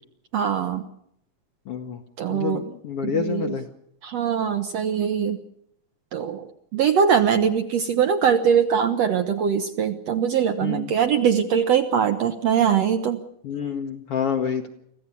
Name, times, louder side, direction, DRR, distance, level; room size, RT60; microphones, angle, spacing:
voice 1, 0.3-0.8 2.2-2.6 3.0-3.6 4.0-5.4 6.1-13.2, right 7 dB, 65° right, 7 dB, 1.7 m, -22 dB
voice 2, 1.7-2.0 2.3-3.7 10.6-10.9 13.4-14.7, left 7 dB, 65° left, 5 dB, 1.5 m, -28 dB
25.0 x 15.5 x 8.4 m, 0.73 s
omnidirectional pair, 4.0 m